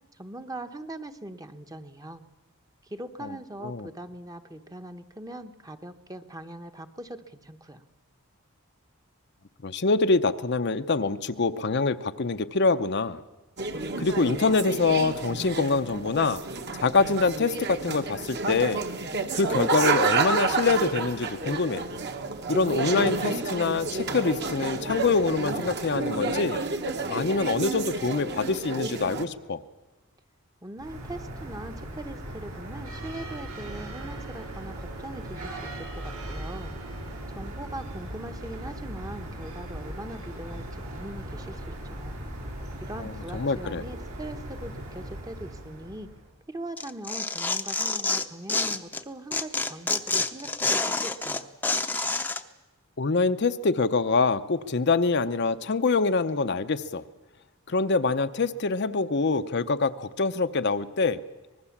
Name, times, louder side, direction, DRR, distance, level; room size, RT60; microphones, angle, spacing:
voice 1, 0.1-2.2 2.8-7.8 30.6-36.8 37.3-42.2 42.8-46.1 46.5-51.5, right 1 dB, 15° right, 8 dB, 1.0 m, -41 dB
voice 2, 9.6-13.2 14.0-16.4 16.8-18.8 19.3-21.9 22.5-26.6 27.1-29.6 43.0-43.8 53.0-57.0 57.7-61.2, left 4 dB, 50° left, 9 dB, 0.7 m, -25 dB
sound 1, 13.6-29.2, right 3 dB, 50° right, 1.6 m, -30 dB
sound 2, 30.8-46.3, right 1 dB, 80° right, 6.9 m, -38 dB
Tearing, 46.8-49.0 49.3-52.4, left 3 dB, 10° left, 0.7 m, -27 dB
25.0 x 20.0 x 7.3 m, 1.1 s
head